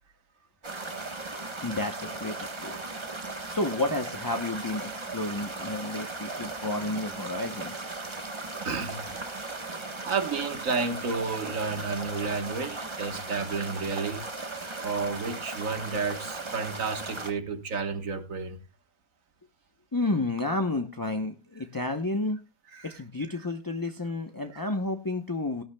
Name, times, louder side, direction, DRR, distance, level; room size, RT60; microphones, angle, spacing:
sound 1, 0.6-17.3, right 3 dB, 20° right, 1.0 m, -37 dB
voice 1, 1.6-2.8 3.5-7.8 19.9-22.4 22.8-25.6, left 2 dB, 20° left, 0.5 m, -31 dB
voice 2, 8.6-9.2 10.0-14.5 14.8-18.6 22.7-23.0 24.5-24.6, right 4 dB, 60° right, 1.7 m, -31 dB
18.5 x 11.5 x 2.2 m
omnidirectional pair, 1.6 m